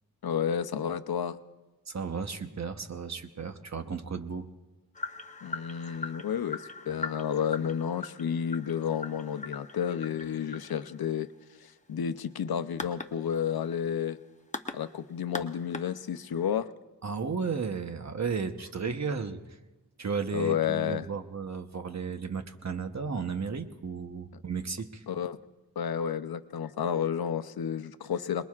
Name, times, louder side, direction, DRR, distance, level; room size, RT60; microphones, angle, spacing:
voice 1, 0.2-1.4 5.4-11.3 11.6-14.2 14.7-16.7 20.3-21.1 25.1-25.4 25.8-28.5, left 8 dB, 75° left, 12 dB, 0.7 m, -31 dB
voice 2, 1.9-4.5 17.0-19.4 20.0-25.0, right 5 dB, 45° right, 7 dB, 1.0 m, -34 dB
sound 1, 4.9-16.4, left 3 dB, 20° left, 0.8 m, -42 dB
27.0 x 20.5 x 2.4 m, 1.2 s
wide cardioid pair, 110°, 37 cm